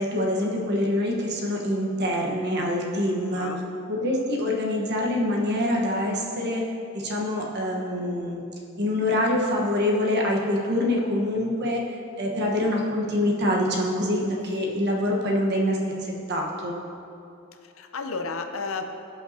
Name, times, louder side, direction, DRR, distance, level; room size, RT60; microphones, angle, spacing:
voice 1, 0.0-3.5 3.9-6.6 6.9-8.4 8.8-11.8 12.2-16.8, left 1 dB, 55° right, -1 dB, 1.2 m, -25 dB
voice 2, 3.3-3.6 17.5-18.8, left 4 dB, 70° left, 6 dB, 0.7 m, -33 dB
16.0 x 5.6 x 2.8 m, 2.6 s
head